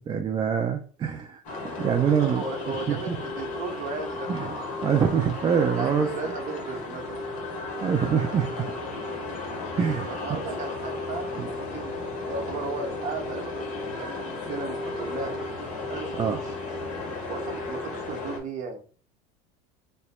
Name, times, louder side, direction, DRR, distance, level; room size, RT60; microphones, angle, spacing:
voice 1, 0.0-3.2 4.3-4.5 4.8-6.1 7.8-8.7 9.8-10.1 11.4-11.5 16.2-16.4, right 7 dB, 25° right, 4 dB, 0.3 m, -25 dB
sound 1, 1.4-18.4, left 3 dB, 50° left, 1.1 m, -34 dB
voice 2, 2.0-4.8 5.7-7.2 10.2-13.6 14.0-15.3 15.9-16.6 17.3-18.8, right 4 dB, 45° right, 4 dB, 0.9 m, -36 dB
2.9 x 2.1 x 4.2 m, 0.41 s
supercardioid pair, 125°, 17 cm